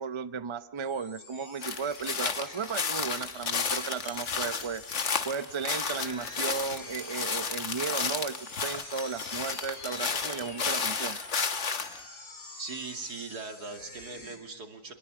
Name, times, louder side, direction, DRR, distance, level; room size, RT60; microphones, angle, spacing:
voice 1, 0.0-4.8 5.2-11.2, right 6 dB, 25° right, 12 dB, 0.6 m, -35 dB
sound 1, 0.8-14.4, left 2 dB, 65° left, 4.6 m, -47 dB
sound 2, 1.6-12.0, left 5 dB, 50° left, 1.6 m, -32 dB
voice 2, 12.6-14.9, right 4 dB, 90° right, 5 dB, 3.1 m, -40 dB
25.0 x 20.5 x 8.6 m, 1.0 s
omnidirectional pair, 1.6 m